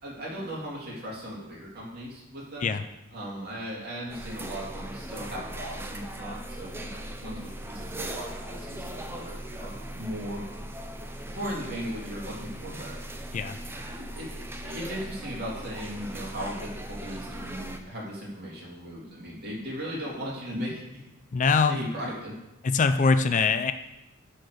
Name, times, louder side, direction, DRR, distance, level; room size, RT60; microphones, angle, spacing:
voice 1, 0.0-2.8 3.1-10.4 11.3-12.9 13.7-21.0 21.5-22.3, equal, 50° right, -4 dB, 3.1 m, -37 dB
sound 1, 4.1-17.8, right 1 dB, 10° right, 0.6 m, -39 dB
voice 2, 21.3-21.8 22.6-23.7, left 4 dB, 35° left, 10 dB, 0.4 m, -23 dB
11.0 x 4.4 x 6.5 m, 0.94 s
head